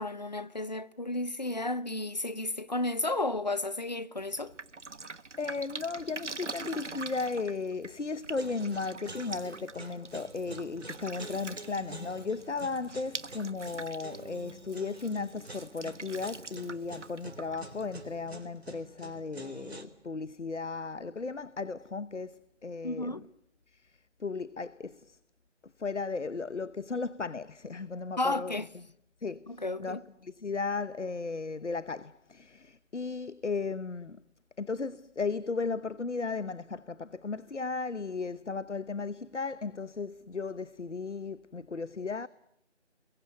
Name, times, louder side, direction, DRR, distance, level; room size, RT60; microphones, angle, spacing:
voice 1, 0.0-4.5 22.8-23.2 28.2-28.6 29.5-30.0, left 2 dB, 35° left, 1.0 m, -32 dB
Drip, 4.2-18.3, right 3 dB, 80° right, 1.4 m, -45 dB
voice 2, 5.4-23.2 23.7-23.9 24.2-25.2 25.8-28.6 29.2-34.2 34.6-42.3, left 4 dB, 80° left, 1.0 m, -35 dB
sound 1, 8.4-19.8, right 2 dB, 60° right, 3.7 m, -48 dB
30.0 x 22.5 x 8.0 m
figure-of-eight pair, 170°, 35 cm